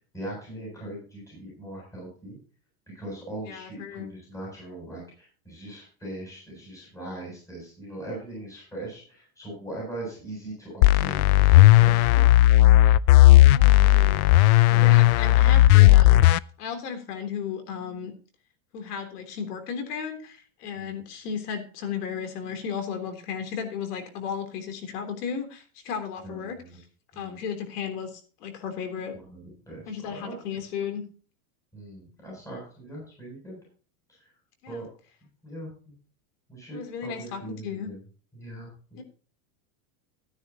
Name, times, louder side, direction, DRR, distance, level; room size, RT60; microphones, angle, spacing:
voice 1, 0.1-2.4 2.9-12.3 14.6-15.0 15.3-15.4 20.8-21.0 26.2-26.8 27.1-27.4 29.3-30.4 31.7-33.6 34.7-34.9 35.4-35.9 36.5-38.0 38.3-39.0, right 1 dB, 5° left, -3 dB, 7.6 m, -40 dB
voice 2, 3.5-4.1 13.5-14.3 14.8-18.1 18.7-26.8 27.2-29.2 29.9-31.0 34.6-34.8 36.7-37.9 39.0-39.1, left 7 dB, 85° left, 6 dB, 3.5 m, -34 dB
sound 1, 10.8-16.4, left 16 dB, 70° left, 0.5 m, -15 dB
15.5 x 9.8 x 2.9 m, 0.39 s
supercardioid pair, 165°, 45 cm